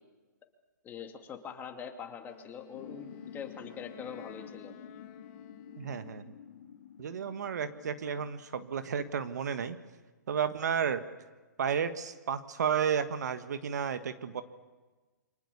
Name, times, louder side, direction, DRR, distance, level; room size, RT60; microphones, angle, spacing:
voice 1, 0.8-4.7, left 7 dB, 20° left, 4 dB, 2.8 m, -43 dB
Wind instrument woodwind instrument, 2.2-6.4, left 12 dB, 40° left, 2.0 m, -55 dB
sound 1, 2.7-8.3, left 8 dB, 65° left, 2.4 m, -49 dB
voice 2, 5.8-6.2 7.0-9.8 10.3-11.0 11.6-14.4, right 7 dB, 65° right, 10 dB, 1.7 m, -32 dB
28.5 x 25.0 x 7.1 m, 1.3 s
hypercardioid pair, 125°, 10 cm